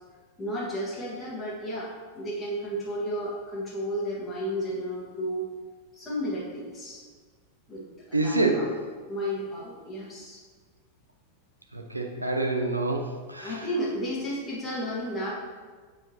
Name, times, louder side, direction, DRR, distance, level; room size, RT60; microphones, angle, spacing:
voice 1, 0.4-5.4 6.0-7.0 7.7-8.8 9.1-10.4 13.4-15.3, equal, 15° left, -8 dB, 1.6 m, -33 dB
voice 2, 8.1-8.7 11.7-13.5, right 2 dB, 85° right, 3 dB, 0.7 m, -27 dB
7.2 x 4.8 x 3.0 m, 1.5 s
figure-of-eight pair, 90°, 0 cm